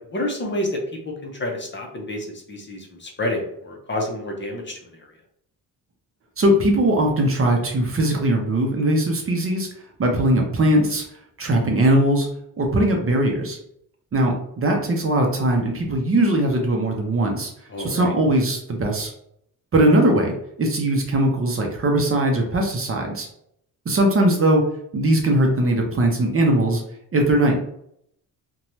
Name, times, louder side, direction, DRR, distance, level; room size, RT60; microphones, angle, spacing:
voice 1, 0.1-4.8 17.7-18.1, left 1 dB, 30° left, 0 dB, 0.6 m, -29 dB
voice 2, 6.4-9.7 10.0-11.0 11.4-12.3 12.6-13.6 14.1-17.5 17.8-19.1 19.7-23.3 23.9-24.6 24.9-26.8 27.1-27.6, right 1 dB, 35° right, 1 dB, 0.6 m, -20 dB
2.6 x 2.2 x 3.0 m, 0.72 s
cardioid pair, 115°, 37 cm